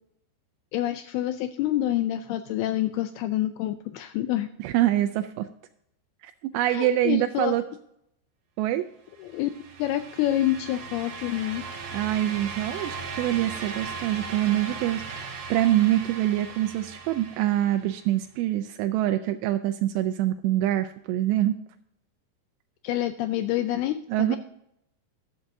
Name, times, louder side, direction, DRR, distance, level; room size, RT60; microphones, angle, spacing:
voice 1, 0.7-4.5 6.7-7.6 9.2-9.5 9.8-11.6 22.8-24.4, left 13 dB, 85° left, 9 dB, 2.3 m, -27 dB
voice 2, 4.6-5.5 6.2-7.6 8.6-8.8 11.9-21.5 24.1-24.4, right 13 dB, 85° right, 7 dB, 2.7 m, -25 dB
sound 1, 9.2-18.1, right 5 dB, 55° right, 2.8 m, -38 dB
14.0 x 12.5 x 2.7 m, 0.76 s
omnidirectional pair, 4.9 m